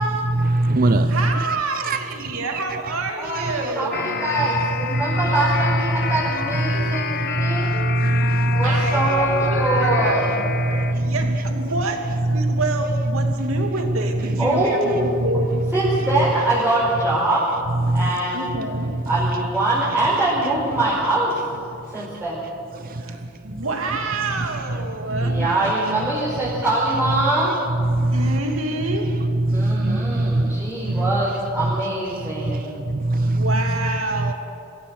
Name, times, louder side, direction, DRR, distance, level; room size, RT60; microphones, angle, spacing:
voice 1, 0.2-1.5 1.8-2.5 3.6-3.7 4.9-5.2 6.1-6.2 6.5-8.9 9.7-9.8 10.6-11.4 12.3-12.6 13.2-13.6 14.3-14.4 15.2-15.3 17.8-18.1 18.8-19.0 21.9-22.1 22.8-23.2 23.5-23.6 24.4-24.5 25.1-25.7 27.8-28.4 29.4-31.1 32.4-33.6 34.2-34.3, right 2 dB, 40° right, 0.6 m, -22 dB
voice 2, 1.1-4.1 8.6-15.6 18.3-19.0 23.0-25.5 28.1-29.2 33.2-34.3, right 2 dB, 70° right, 2.6 m, -28 dB
voice 3, 3.2-7.7 8.5-10.2 14.4-15.2 15.7-17.4 17.9-18.5 19.0-21.4 21.9-22.4 25.2-27.5 29.5-32.7 33.8-33.9, right 2 dB, 10° right, 5.2 m, -23 dB
sound 1, 3.9-10.9, left 6 dB, 45° left, 0.9 m, -28 dB
22.5 x 16.0 x 7.9 m
head